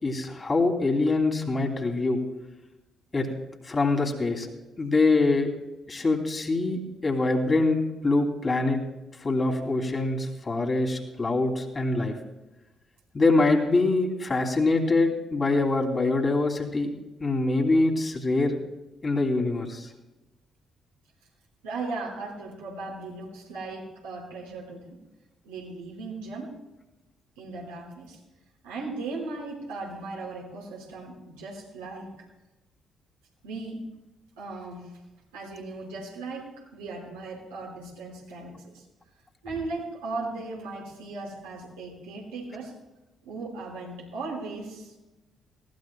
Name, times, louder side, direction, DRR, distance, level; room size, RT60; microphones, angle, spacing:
voice 1, 0.0-2.2 3.1-3.3 3.6-4.5 4.8-5.5 5.9-8.8 9.2-12.1 13.1-16.9 17.2-18.6 19.0-19.9, left 3 dB, 30° left, 1 dB, 3.0 m, -24 dB
voice 2, 21.6-25.0 25.4-26.5 27.4-28.2 28.6-32.3 33.4-33.9 34.4-34.9 35.3-38.8 39.4-42.7 43.2-44.9, right 3 dB, 75° right, -4 dB, 5.1 m, -37 dB
20.5 x 18.0 x 2.3 m, 1.0 s
figure-of-eight pair, 40°, 0 cm